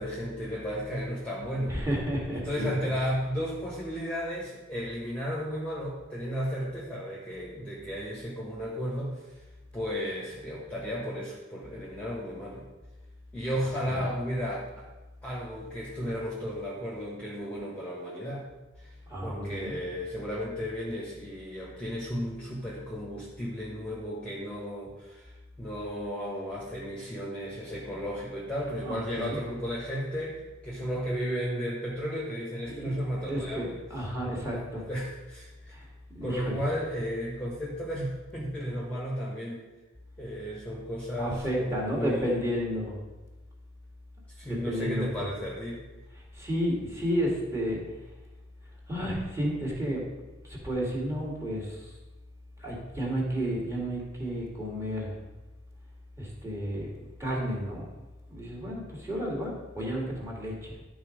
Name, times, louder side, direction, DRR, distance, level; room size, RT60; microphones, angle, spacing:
voice 1, 0.0-1.8 2.3-9.2 9.7-12.6 13.3-14.9 15.2-18.5 18.8-18.9 19.2-30.4 30.6-33.8 34.4-34.6 34.9-35.8 36.2-39.6 40.2-42.4 44.4-45.8, equal, 5° left, -5 dB, 1.5 m, -34 dB
voice 2, 1.7-2.9 13.6-14.0 19.1-19.8 27.9-28.0 28.8-29.4 30.8-30.9 32.6-34.9 35.7-35.9 36.1-36.6 41.2-43.0 44.4-45.3 46.1-47.8 48.9-50.1 50.4-51.9 52.6-55.1 56.2-56.9 57.2-57.8 58.3-60.7, equal, 15° right, -4 dB, 2.2 m, -32 dB
11.5 x 4.1 x 5.1 m, 1.1 s
head